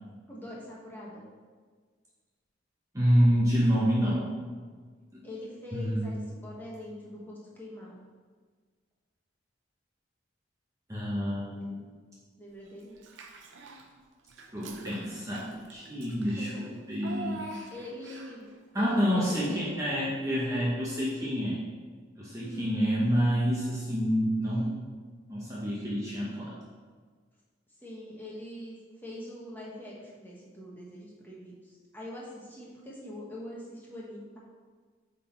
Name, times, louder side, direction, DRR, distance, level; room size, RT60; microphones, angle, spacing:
voice 1, 0.3-1.3 3.8-4.2 5.2-8.0 11.6-11.8 12.4-13.0 16.2-16.6 17.7-18.5 18.8-19.8 22.3-22.8 27.8-34.4, left 1 dB, 10° left, -5 dB, 1.3 m, -43 dB
voice 2, 2.9-4.2 5.1-5.2 5.7-6.1 10.9-11.8 14.5-17.4 18.7-21.6 22.2-24.7 25.3-26.6, equal, 15° right, -7 dB, 0.9 m, -28 dB
Child speech kid speaking / Bathtub (filling or washing), 13.0-13.9 14.3-18.5, right 3 dB, 80° right, 0.7 m, -45 dB
8.0 x 3.9 x 4.5 m, 1.5 s
head